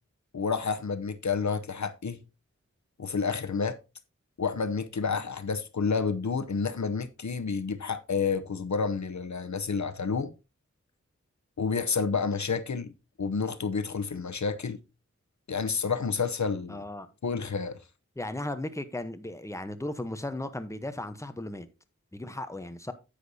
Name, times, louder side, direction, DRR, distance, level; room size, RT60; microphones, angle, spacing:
voice 1, 0.3-2.2 3.0-3.8 4.4-10.3 11.6-12.9 13.2-14.8 15.5-16.8 17.2-17.8, left 5 dB, 75° left, 0.8 m, -29 dB
voice 2, 16.7-17.1 18.2-21.7 22.1-22.9, left 1 dB, 10° left, 0.9 m, -36 dB
10.0 x 8.2 x 2.7 m
wide cardioid pair, 60°, 29 cm